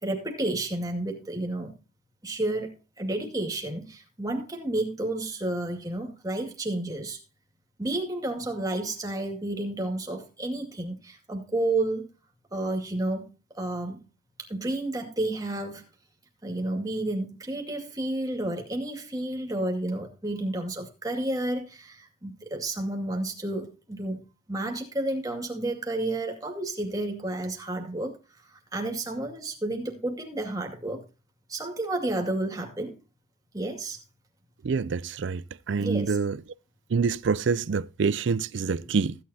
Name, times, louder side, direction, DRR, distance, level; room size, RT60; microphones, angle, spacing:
voice 1, 0.0-1.7 2.2-7.2 7.8-12.1 12.5-13.3 13.5-14.0 14.5-15.8 16.4-28.2 28.5-31.0 31.5-33.0 33.5-34.0 35.8-36.2, right 2 dB, 20° right, 2.2 m, -31 dB
voice 2, 34.6-36.4 36.9-39.2, right 5 dB, 70° right, 0.4 m, -26 dB
15.5 x 9.7 x 2.8 m
head